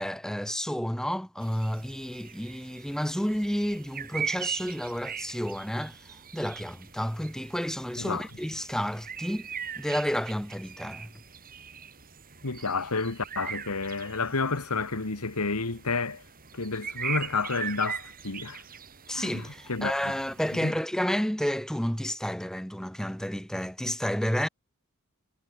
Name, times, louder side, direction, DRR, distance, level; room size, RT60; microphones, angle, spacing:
voice 1, 0.0-9.5 9.8-11.1 19.1-24.5, equal, 5° left, 1.0 m, -31 dB
sound 1, 1.4-20.7, right 7 dB, 40° right, 4.7 m, -41 dB
voice 2, 12.4-16.2 16.5-18.6 19.1-20.1 20.5-20.7, left 4 dB, 85° left, 1.8 m, -30 dB
head